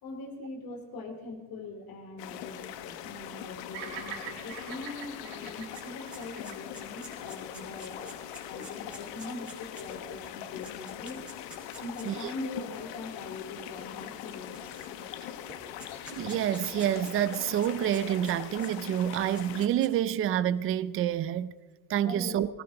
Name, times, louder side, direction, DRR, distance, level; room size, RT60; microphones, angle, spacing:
voice 1, 0.0-8.2 8.5-11.2 11.8-14.6 14.9-15.4 22.0-22.5, left 3 dB, 50° left, 3.0 m, -42 dB
sound 1, 2.2-19.7, left 10 dB, 70° left, 1.2 m, -42 dB
Bird vocalization bird call bird song, 3.7-8.0, right 8 dB, 70° right, 3.2 m, -44 dB
sound 2, 4.9-5.0 5.3-12.2 13.0-13.1 14.1-15.2 15.5-18.7 19.1-20.1, right 1 dB, ahead, 4.3 m, -49 dB
voice 2, 16.1-21.5 21.9-22.5, right 11 dB, 30° right, 0.5 m, -28 dB
18.5 x 18.5 x 3.8 m
cardioid pair, 165°, 45 cm